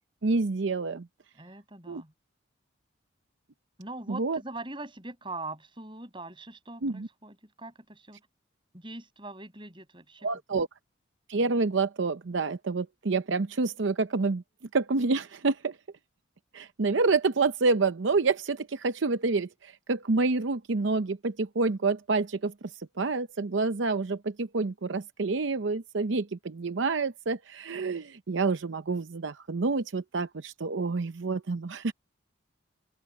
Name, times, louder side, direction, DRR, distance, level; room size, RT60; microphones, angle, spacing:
voice 1, 0.2-1.1 1.9-2.0 4.1-4.4 6.8-7.1 10.2-10.7 11.3-14.4 14.7-15.8 16.5-31.9, right 3 dB, 70° right, 0.7 m, -28 dB
voice 2, 1.3-2.1 3.8-8.2 8.7-10.3, right 2 dB, 25° right, 5.9 m, -42 dB
open air
head